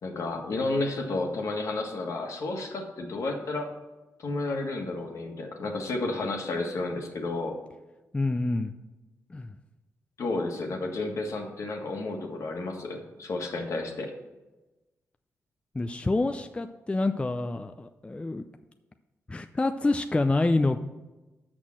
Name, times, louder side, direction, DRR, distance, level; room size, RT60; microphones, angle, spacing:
voice 1, 0.0-3.7 4.2-7.6 10.2-14.1, left 2 dB, 65° left, 2 dB, 1.5 m, -31 dB
voice 2, 8.1-8.7 9.3-9.6 15.7-18.4 19.3-20.8, left 2 dB, 20° left, 7 dB, 0.5 m, -27 dB
6.4 x 6.1 x 7.3 m, 1.1 s
cardioid pair, 70°, 6 cm